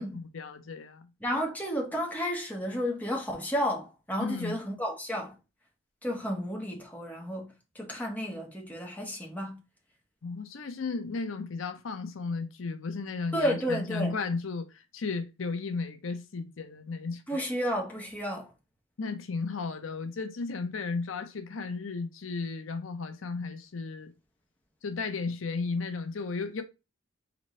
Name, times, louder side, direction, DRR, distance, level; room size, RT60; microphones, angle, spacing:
voice 1, 0.0-1.0 4.2-4.6 10.2-17.2 19.0-24.1 24.8-26.6, left 4 dB, 75° left, 0.6 m, -34 dB
voice 2, 1.2-5.3 6.0-9.6 13.3-14.1 17.3-18.5, equal, 10° left, 1.1 m, -32 dB
4.3 x 4.0 x 3.1 m
head